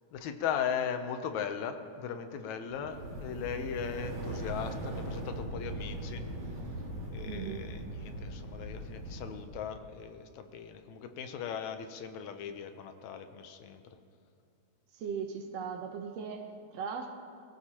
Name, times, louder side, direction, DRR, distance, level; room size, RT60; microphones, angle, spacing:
voice 1, 0.1-6.2 7.1-14.0, left 7 dB, 75° left, 8 dB, 2.1 m, -38 dB
sound 1, 2.7-9.7, right 1 dB, 85° right, 3.9 m, -40 dB
voice 2, 7.3-7.6 14.9-17.1, right 6 dB, 70° right, 5 dB, 2.0 m, -38 dB
23.5 x 16.0 x 2.9 m, 2.4 s
omnidirectional pair, 3.4 m